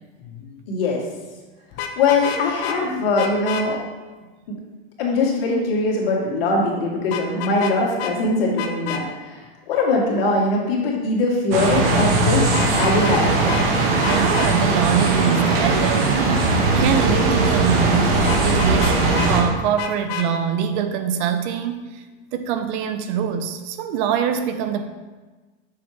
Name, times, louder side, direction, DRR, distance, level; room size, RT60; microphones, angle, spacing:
voice 1, 0.7-1.1 2.0-3.8 5.0-12.5 12.8-13.5, left 2 dB, 70° left, -3 dB, 2.2 m, -21 dB
Vehicle horn car horn honking, 1.7-2.8 3.2-3.6 7.1-7.7 8.0-8.1 8.6-9.0 12.4-13.2 13.5-13.7 14.0-14.5 18.3-19.3 19.8-20.3, left 9 dB, 40° left, 0.6 m, -29 dB
sound 1, 11.5-19.4, right 3 dB, 70° right, 1.4 m, -19 dB
voice 2, 14.0-22.0 22.3-24.9, right 8 dB, 50° right, 9 dB, 0.7 m, -23 dB
6.8 x 6.1 x 3.3 m, 1.3 s
supercardioid pair, 135°, 30 cm